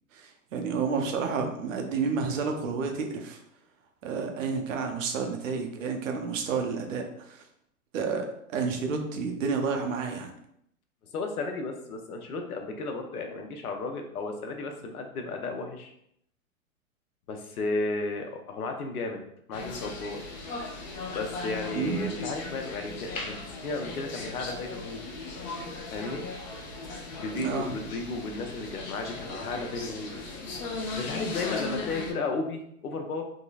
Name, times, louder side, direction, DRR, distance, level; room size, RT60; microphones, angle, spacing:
voice 1, 0.1-3.4 4.0-7.4 7.9-10.3 21.7-22.1 27.3-27.8, right 5 dB, 60° right, 3 dB, 0.7 m, -30 dB
voice 2, 11.1-15.9 17.3-19.2 19.5-20.2 21.1-25.0 25.9-26.3 27.2-30.1 31.0-33.2, left 3 dB, 80° left, 4 dB, 0.7 m, -34 dB
sound 1, 19.5-32.1, left 3 dB, 35° left, 0.5 m, -37 dB
3.7 x 2.0 x 2.3 m, 0.72 s
hypercardioid pair, 125°, 44 cm